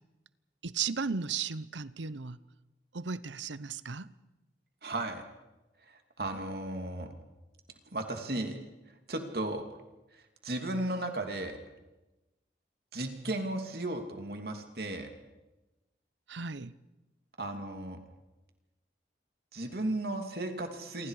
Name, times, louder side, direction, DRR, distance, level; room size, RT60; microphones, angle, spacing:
voice 1, 0.6-2.4 2.9-4.1 16.3-16.7, right 5 dB, 85° right, 0.8 m, -35 dB
voice 2, 4.8-5.2 5.9-7.1 7.9-8.6 9.1-9.6 10.1-11.6 12.9-15.1 17.4-18.0 19.5-21.1, right 1 dB, 55° right, 2.7 m, -35 dB
27.5 x 24.0 x 4.9 m
head